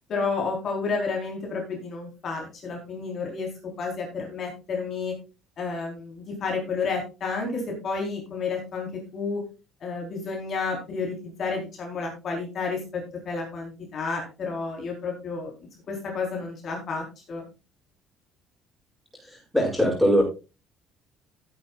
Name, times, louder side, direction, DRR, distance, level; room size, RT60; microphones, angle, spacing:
voice 1, 0.1-3.5 3.8-5.1 5.6-9.4 9.8-15.5 15.9-17.4, left 4 dB, 40° left, 0 dB, 4.2 m, -31 dB
voice 2, 19.2-20.2, equal, ahead, -3 dB, 7.8 m, -22 dB
15.5 x 9.9 x 2.5 m, 0.30 s
cardioid pair, 155°, 0 cm